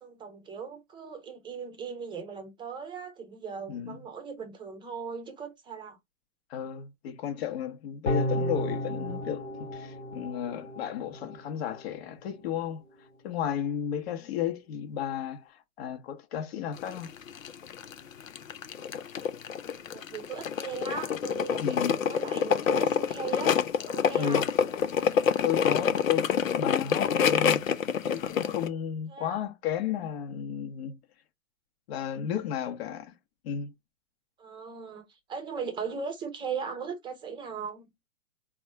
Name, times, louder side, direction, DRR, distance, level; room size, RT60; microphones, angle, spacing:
voice 1, 0.0-6.0 14.2-14.3 19.7-23.6 23.9-24.5 29.1-29.4 34.4-37.9, right 6 dB, 10° right, 0.8 m, -38 dB
voice 2, 3.7-4.0 6.5-9.5 9.7-12.8 13.2-17.1 21.6-22.0 24.1-24.4 25.4-27.6 28.1-31.0 31.9-33.1 33.4-33.7, left 9 dB, 50° left, 1.1 m, -33 dB
sound 1, 8.1-11.4 11.8-11.9, equal, 5° left, 0.4 m, -33 dB
sound 2, 16.8-28.7, left 7 dB, 75° left, 0.7 m, -27 dB
4.1 x 2.3 x 4.6 m
hypercardioid pair, 125°, 40 cm